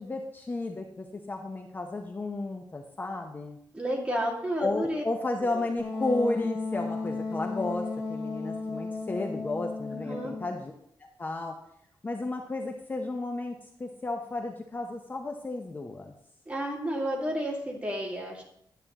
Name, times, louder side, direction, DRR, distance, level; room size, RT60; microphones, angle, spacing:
voice 1, 0.0-3.6 4.6-10.7 11.2-11.5 12.0-13.5 13.8-16.1, left 2 dB, 25° left, 3 dB, 0.7 m, -33 dB
voice 2, 3.7-5.0 5.4-5.7 9.9-10.3 16.5-18.4, equal, 15° right, -2 dB, 2.0 m, -31 dB
Wind instrument woodwind instrument, 5.8-10.6, left 3 dB, 50° left, 1.7 m, -34 dB
11.0 x 8.6 x 2.9 m, 0.72 s
wide cardioid pair, 135°, 8 cm